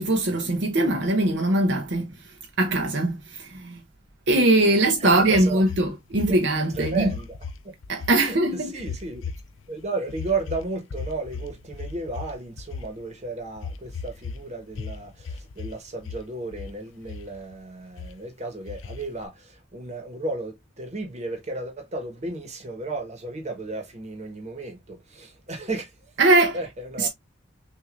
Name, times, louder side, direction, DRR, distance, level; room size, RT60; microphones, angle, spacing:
voice 1, 0.0-2.1 2.6-3.8 4.3-7.1 7.9-8.7 26.2-26.6 27.0-27.1, right 2 dB, 60° right, 0.8 m, -21 dB
voice 2, 5.0-5.6 6.3-6.4 6.7-7.7 8.2-9.3 9.7-26.1 26.5-27.1, right 3 dB, 35° right, 1.2 m, -34 dB
sound 1, 5.3-7.6 7.8-8.2 8.8-9.7 10.1-13.0 13.6-14.4 14.7-15.8 16.0-16.7 17.0-17.6 18.0-18.1 18.7-19.3, left 5 dB, 75° left, 0.5 m, -36 dB
6.0 x 2.7 x 2.5 m
head